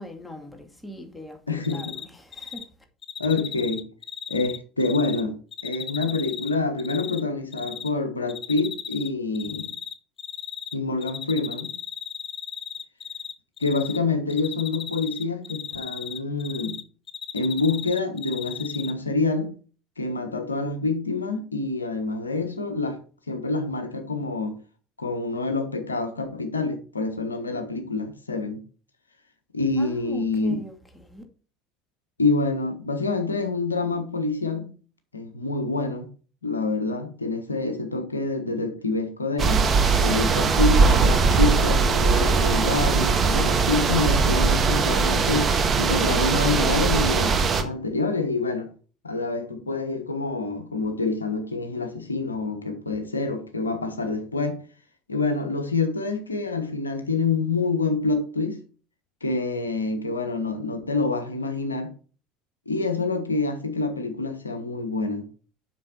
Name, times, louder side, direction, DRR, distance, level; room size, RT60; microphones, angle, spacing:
voice 1, 0.0-1.4 1.7-1.8 2.2-2.7 29.8-31.2, left 1 dB, 5° left, 2.3 m, -40 dB
voice 2, 1.5-2.0 3.2-3.8 4.3-5.4 5.6-9.7 10.7-11.7 13.6-16.8 17.3-19.5 20.0-23.0 23.3-24.6 25.0-28.6 29.5-30.6 32.2-34.7 35.1-36.1 36.4-39.6 40.0-45.5 45.8-48.7 49.0-54.6 55.1-58.6 59.2-61.9 62.7-65.3, left 3 dB, 85° left, 1.2 m, -27 dB
Cricket, 1.6-2.0 2.3-2.6 3.0-5.2 5.5-7.2 7.5-7.9 8.3-9.1 9.3-10.7 11.0-13.3 13.6-14.0 14.3-16.8 17.1-18.9, left 7 dB, 35° left, 0.8 m, -35 dB
sound 1, 39.4-47.6, right 4 dB, 35° right, 1.3 m, -20 dB
7.6 x 6.3 x 4.4 m
figure-of-eight pair, 65°, 0 cm